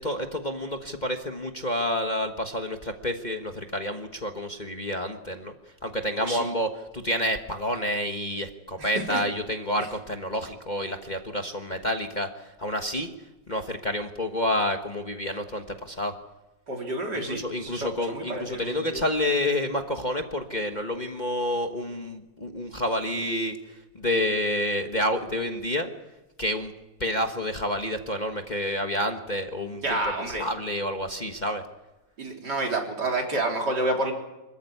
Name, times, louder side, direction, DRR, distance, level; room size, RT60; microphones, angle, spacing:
voice 1, 0.0-5.5 5.8-13.1 13.5-16.1 17.1-23.6 23.9-25.9 26.4-26.7 27.0-31.6, left 1 dB, 25° left, 4 dB, 1.3 m, -29 dB
voice 2, 6.2-6.5 8.8-9.2 16.7-19.0 29.8-30.5 32.2-34.1, right 2 dB, 65° right, 1 dB, 4.2 m, -29 dB
26.0 x 14.5 x 9.7 m, 1.0 s
omnidirectional pair, 1.9 m